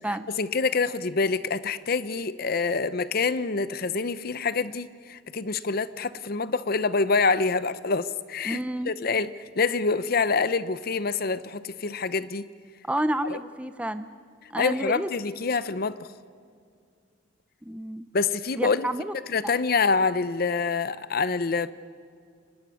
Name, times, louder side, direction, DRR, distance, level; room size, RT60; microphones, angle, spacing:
voice 1, 0.1-12.5 13.2-13.4 14.6-16.1 18.1-18.9 19.3-21.7, left 4 dB, 50° left, 15 dB, 0.7 m, -26 dB
voice 2, 8.4-8.9 12.9-14.1 14.5-15.1 17.6-18.1 18.6-19.1, right 1 dB, 5° right, 11 dB, 0.5 m, -30 dB
24.5 x 20.0 x 6.4 m, 2.3 s
head